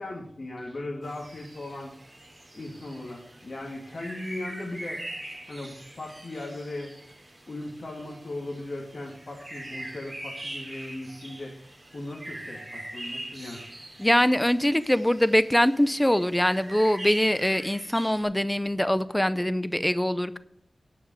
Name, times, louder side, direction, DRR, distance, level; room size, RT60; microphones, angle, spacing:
voice 1, 0.0-1.9 2.5-5.0 5.5-6.9 7.5-11.5 11.9-13.6, left 2 dB, 65° left, -2 dB, 2.3 m, -38 dB
sound 1, 1.0-18.2, right 1 dB, 30° right, 2.8 m, -42 dB
voice 2, 14.0-20.4, left 1 dB, 10° left, 14 dB, 0.5 m, -23 dB
10.5 x 5.9 x 7.5 m, 0.74 s
wide cardioid pair, 60°, 0 cm